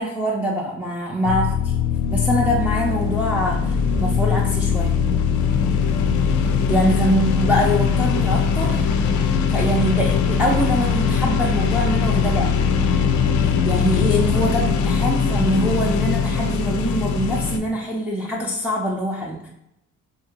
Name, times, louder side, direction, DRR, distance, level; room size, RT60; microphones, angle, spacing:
voice 1, 0.0-1.7 2.1-4.9 6.7-8.9 9.5-12.6 13.4-19.5, equal, 5° right, -4 dB, 0.5 m, -24 dB
sound 1, 1.2-17.6, left 6 dB, 70° left, 0.4 m, -20 dB
2.8 x 2.5 x 2.9 m, 0.80 s
cardioid pair, 90°, 30 cm